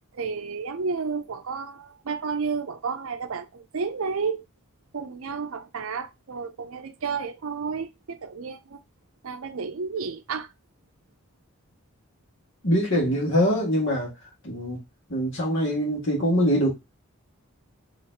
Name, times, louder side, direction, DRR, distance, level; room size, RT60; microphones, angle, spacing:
voice 1, 0.1-4.4 4.9-8.8 9.2-10.5, right 5 dB, 70° right, 0.5 m, -31 dB
voice 2, 12.6-14.1 14.4-14.8 15.1-16.7, equal, 55° left, 1.8 m, -23 dB
4.2 x 3.2 x 2.6 m
head